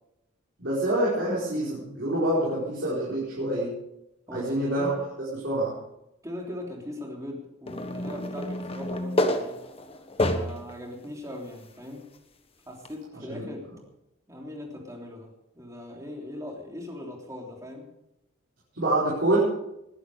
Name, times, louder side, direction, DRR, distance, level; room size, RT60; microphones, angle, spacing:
voice 1, 0.6-3.7 4.3-4.9 5.3-5.7 13.3-13.5 18.7-19.4, right 1 dB, 60° right, -7 dB, 4.9 m, -26 dB
voice 2, 4.3-4.9 6.2-9.6 10.2-12.0 12.6-13.7 14.3-17.9, left 1 dB, 15° right, 0 dB, 3.3 m, -40 dB
sound 1, 7.7-10.7 11.3-11.4 12.9-13.0, left 1 dB, 30° left, 1.3 m, -28 dB
21.0 x 11.0 x 5.0 m, 0.86 s
head